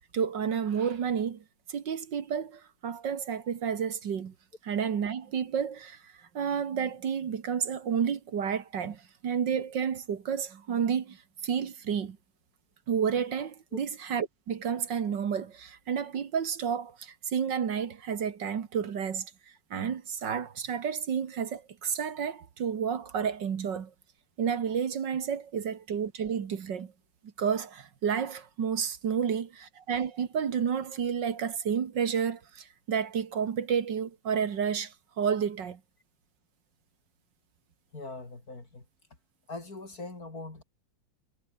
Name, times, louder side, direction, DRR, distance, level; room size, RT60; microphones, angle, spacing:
voice 1, 0.1-1.4 1.7-4.3 4.6-12.2 12.9-19.3 19.7-23.9 24.4-26.9 27.4-35.8, right 7 dB, 70° right, 2.2 m, -31 dB
voice 2, 37.9-38.8 39.5-40.6, left 3 dB, 50° left, 5.0 m, -41 dB
omnidirectional pair, 2.1 m